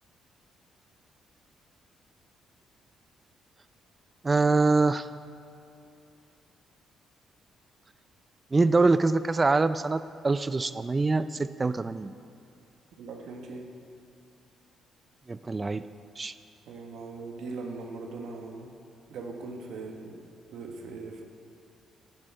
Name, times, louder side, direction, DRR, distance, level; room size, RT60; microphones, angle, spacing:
voice 1, 4.2-5.1 8.5-12.1 15.3-15.8 16.2-16.3, right 3 dB, 25° right, 13 dB, 0.3 m, -24 dB
voice 2, 13.0-13.7 16.7-18.7 19.1-21.2, right 3 dB, 75° right, 2 dB, 1.2 m, -40 dB
11.0 x 8.0 x 4.4 m, 2.7 s
cardioid pair, 90°, 0 cm